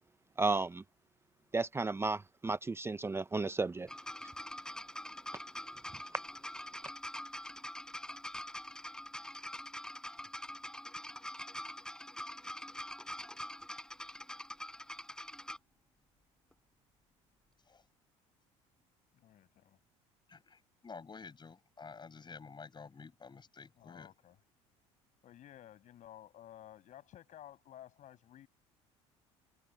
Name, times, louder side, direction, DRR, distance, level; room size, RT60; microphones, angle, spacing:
voice 1, 0.4-0.8 1.5-3.9, right 3 dB, 15° right, 0.6 m, -33 dB
sound 1, 3.9-15.6 16.5-16.6, left 1 dB, 5° left, 4.8 m, -45 dB
voice 2, 19.1-19.8 23.8-24.4 25.2-28.5, left 12 dB, 55° left, 7.6 m, -54 dB
voice 3, 20.3-24.1, left 5 dB, 30° left, 6.7 m, -51 dB
hypercardioid pair, 75°, 15 cm